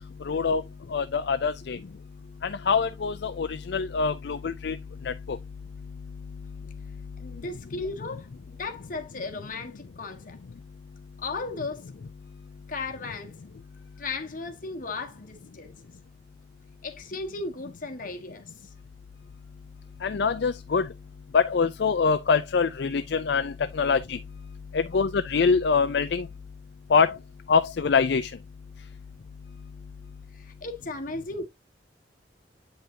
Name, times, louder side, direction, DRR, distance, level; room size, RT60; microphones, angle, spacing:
voice 1, 0.2-0.6 0.9-1.8 2.4-4.8 5.0-5.4 20.0-20.9 21.3-24.2 24.7-26.3 26.9-27.2 27.5-28.3, left 5 dB, 60° left, 0.4 m, -24 dB
voice 2, 7.2-10.4 11.2-11.9 12.7-13.3 14.0-15.7 16.8-18.7 24.9-25.0 30.3-31.5, left 3 dB, 45° left, 1.4 m, -36 dB
8.7 x 5.3 x 2.7 m
head